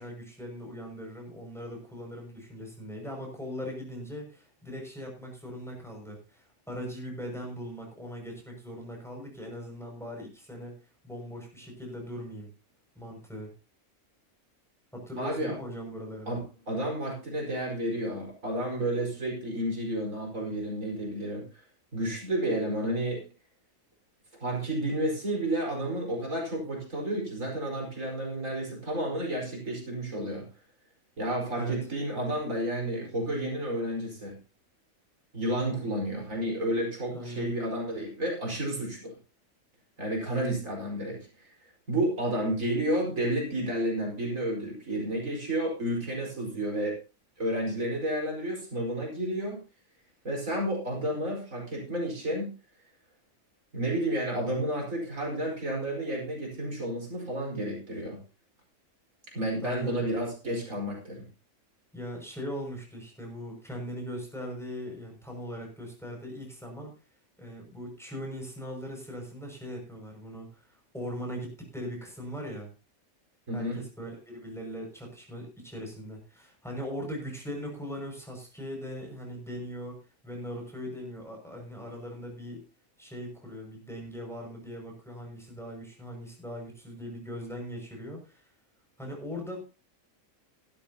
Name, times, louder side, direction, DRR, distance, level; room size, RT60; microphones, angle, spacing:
voice 1, 0.0-10.8 11.0-12.5 13.0-13.5 14.9-16.4 31.6-31.8 35.8-35.9 37.1-37.5 59.6-60.1 61.9-66.9 67.4-72.7 73.5-80.0 80.2-82.6 83.0-88.5 89.0-89.6, equal, ahead, 0 dB, 6.3 m, -40 dB
voice 2, 15.2-15.6 16.3-16.4 16.7-21.4 21.9-23.3 24.4-30.5 31.2-34.4 35.3-39.2 40.0-41.2 41.9-47.0 47.4-49.6 50.2-52.5 53.7-58.2 59.3-61.3 73.5-73.8, right 1 dB, 75° right, 0 dB, 5.3 m, -31 dB
17.0 x 12.0 x 2.9 m, 0.32 s
omnidirectional pair, 1.4 m